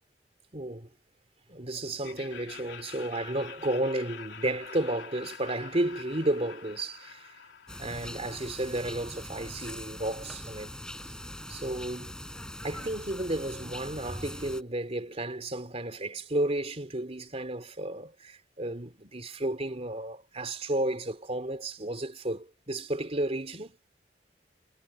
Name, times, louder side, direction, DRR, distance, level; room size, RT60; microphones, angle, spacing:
voice 1, 0.5-0.9 1.5-7.3 7.8-10.8 11.5-12.1 12.6-23.8, right 1 dB, 35° right, 3.1 m, -32 dB
Laughter, 2.0-9.0, left 6 dB, 80° left, 3.3 m, -47 dB
sound 1, 7.7-14.6, left 1 dB, 5° left, 4.9 m, -42 dB
head